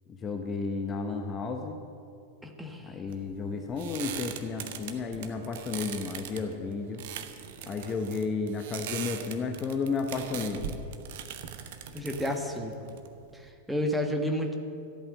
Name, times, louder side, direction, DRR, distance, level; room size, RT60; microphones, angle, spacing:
voice 1, 0.1-1.8 2.8-7.0 7.7-10.8, left 4 dB, 25° left, 4 dB, 0.9 m, -32 dB
voice 2, 2.4-2.9 11.9-12.7 13.3-14.5, equal, 5° right, 3 dB, 1.4 m, -31 dB
sound 1, 3.1-13.5, right 8 dB, 55° right, 1.0 m, -41 dB
13.5 x 8.7 x 7.3 m, 2.6 s
figure-of-eight pair, 90°, 0 cm